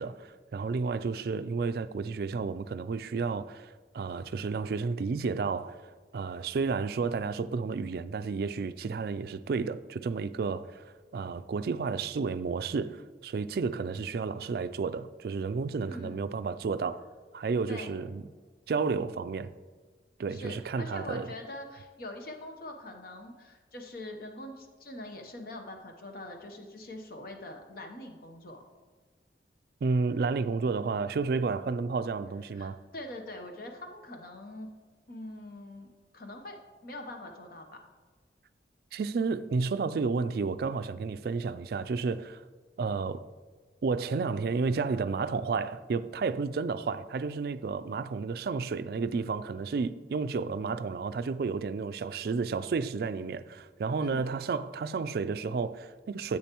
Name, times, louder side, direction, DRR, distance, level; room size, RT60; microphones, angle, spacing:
voice 1, 0.0-5.8 6.1-10.8 11.1-17.0 17.3-18.2 18.7-19.5 20.2-21.3 29.8-32.8 38.9-42.4 42.8-43.3 43.8-56.4, right 4 dB, 55° right, 0.3 m, -31 dB
voice 2, 15.9-16.2 17.7-17.9 20.3-28.6 32.5-34.7 35.1-37.8 54.0-54.3, left 1 dB, 55° left, 0.8 m, -43 dB
10.0 x 7.8 x 3.0 m
head